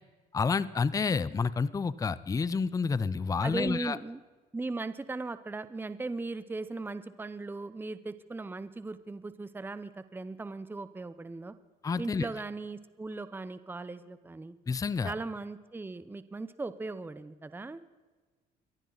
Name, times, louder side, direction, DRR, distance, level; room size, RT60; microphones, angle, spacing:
voice 1, 0.3-4.0 11.8-12.3 14.7-15.1, left 5 dB, 20° left, 17 dB, 0.6 m, -29 dB
voice 2, 3.4-4.2 4.5-11.5 12.0-14.5 15.0-17.8, right 3 dB, 10° right, 13 dB, 0.8 m, -38 dB
22.5 x 14.5 x 4.0 m, 1.3 s
cardioid pair, 110°, 17 cm